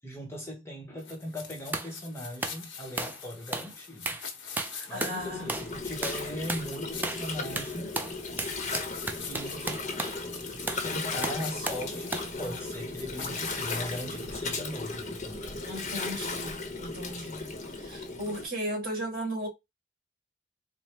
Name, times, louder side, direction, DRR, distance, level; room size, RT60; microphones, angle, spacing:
voice 1, 0.0-4.2 4.9-8.0 9.2-9.9 10.8-15.6, equal, 15° left, 1.0 m, -39 dB
sound 1, 1.0-14.4, left 6 dB, 70° left, 1.1 m, -44 dB
sound 2, 1.7-1.9 2.4-2.6 3.0-3.2 3.5-3.7 4.1-4.3 4.6-5.2 5.5-5.7 6.0-6.2 6.5-6.7 7.0-7.3 7.6-10.2 10.7-10.9 11.2-11.9 12.1-12.3, right 2 dB, 10° right, 0.5 m, -34 dB
voice 2, 4.7-5.5 15.7-19.5, equal, 50° right, 2.2 m, -36 dB
Gurgling, 5.2-18.4, left 3 dB, 40° left, 1.0 m, -36 dB
4.3 x 2.2 x 3.2 m
head